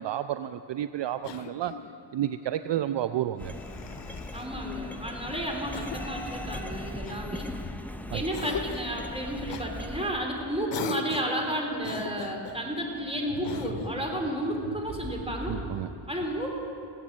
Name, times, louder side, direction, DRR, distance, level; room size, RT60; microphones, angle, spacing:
voice 1, 0.0-1.8 2.1-3.5 8.1-8.3 15.5-15.9, right 11 dB, 60° right, 12 dB, 0.5 m, -31 dB
Cough, 1.2-2.0 3.3-4.5 5.7-6.2 7.0-7.9 8.3-9.0 9.5-9.7 10.7-11.4 11.8-12.6 13.4-14.0, left 8 dB, 60° left, 0.9 m, -39 dB
sound 1, 3.4-10.1, left 1 dB, 5° left, 0.9 m, -39 dB
voice 2, 4.3-7.5 8.1-15.6 16.1-16.5, right 1 dB, 10° right, 1 dB, 3.4 m, -32 dB
sound 2, 9.1-15.6, right 1 dB, 45° right, 4.0 m, -44 dB
18.0 x 8.4 x 7.4 m, 2.7 s
cardioid pair, 50°, 49 cm